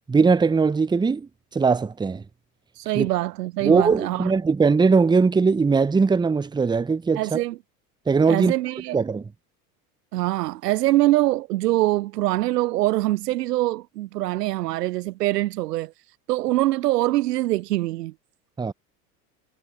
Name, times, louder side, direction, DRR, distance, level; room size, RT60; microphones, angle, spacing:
voice 1, 0.1-2.2 2.9-3.1 3.6-7.4 8.1-8.5 8.9-9.3 18.6-18.7, right 4 dB, 10° right, 0.7 m, -20 dB
voice 2, 2.8-4.3 7.2-7.6 8.3-9.0 10.1-15.9 16.3-18.1, right 16 dB, 80° right, 0.7 m, -24 dB
hypercardioid pair, 85°, 47 cm